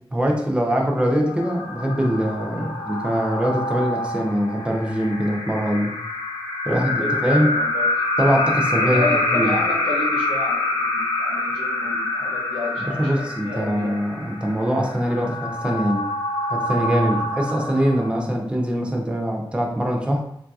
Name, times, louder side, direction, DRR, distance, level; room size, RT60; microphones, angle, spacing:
voice 1, 0.1-5.9 6.7-7.6 8.2-9.5 12.8-16.1 16.5-20.2, equal, 10° right, 0 dB, 0.6 m, -23 dB
sound 1, 1.1-18.5, left 2 dB, 55° left, 1.0 m, -26 dB
voice 2, 6.7-7.9 8.8-14.0 17.0-17.3, left 2 dB, 90° left, -5 dB, 0.7 m, -32 dB
3.7 x 2.6 x 2.3 m, 0.74 s
wide cardioid pair, 80°, 9 cm